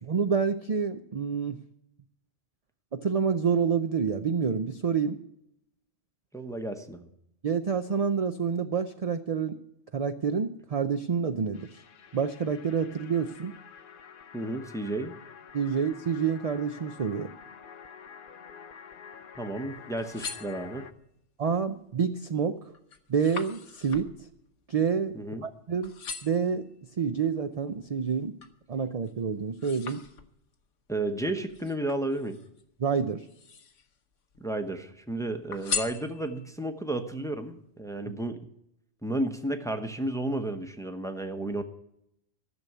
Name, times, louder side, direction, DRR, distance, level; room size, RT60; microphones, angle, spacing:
voice 1, 0.0-1.6 2.9-5.2 7.4-9.6 9.9-11.8 12.1-13.5 15.5-17.3 21.4-22.7 23.1-24.3 24.7-25.2 25.4-25.9 26.2-26.7 27.0-28.3 28.7-30.0 32.8-33.3 38.1-38.2, right 6 dB, 45° right, 8 dB, 0.5 m, -28 dB
voice 2, 6.3-7.1 14.3-15.2 19.4-20.9 25.1-25.4 30.9-32.4 34.4-38.4 39.0-41.6, right 1 dB, 5° left, 7 dB, 0.8 m, -32 dB
sound 1, 11.5-20.9, left 7 dB, 55° left, 0.7 m, -48 dB
sound 2, 19.8-21.1 21.7-22.1 22.4-25.5 25.8-26.5 27.1-28.6 29.0-30.6 31.5-32.6 33.2-34.0 34.3-35.0 35.5-36.6 37.1-37.2, left 5 dB, 80° left, 1.3 m, -40 dB
14.0 x 6.9 x 9.3 m, 0.78 s
omnidirectional pair, 1.2 m